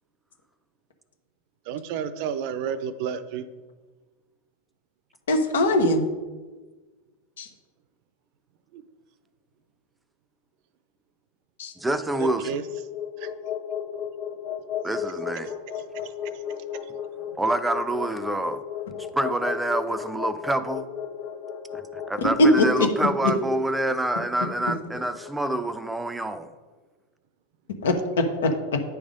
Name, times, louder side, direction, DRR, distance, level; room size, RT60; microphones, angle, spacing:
voice 1, 1.7-3.4 12.4-12.6 13.2-13.3, right 8 dB, 60° right, 13 dB, 0.5 m, -30 dB
voice 2, 5.3-6.0 7.4-7.5 11.6-11.7 22.4-22.9 27.8-28.5, left 1 dB, 90° left, 5 dB, 1.1 m, -20 dB
sound 1, 11.8-26.1, left 8 dB, 50° left, 1.2 m, -35 dB
voice 3, 11.8-12.6 14.8-15.5 17.4-18.6 19.1-20.9 21.7-26.5, right 2 dB, 5° right, 11 dB, 0.4 m, -27 dB
9.2 x 3.5 x 5.2 m, 1.3 s
supercardioid pair, 120°, 0 cm